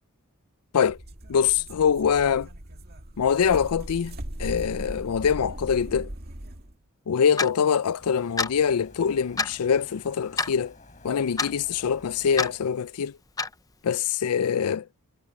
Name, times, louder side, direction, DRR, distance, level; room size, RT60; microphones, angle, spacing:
sound 1, 0.8-6.7, right 1 dB, 45° right, 2.1 m, -39 dB
voice 1, 1.3-2.5 3.2-6.1 7.1-10.7 11.0-13.2 13.8-14.9, left 7 dB, 85° left, 0.4 m, -24 dB
Clock, 7.4-7.5 8.4-8.6 9.4-9.6 10.4-10.6 11.4-11.5 12.4-12.5 13.4-13.5, left 4 dB, 15° left, 0.6 m, -26 dB
sound 2, 8.0-12.8, left 2 dB, 35° left, 6.5 m, -51 dB
head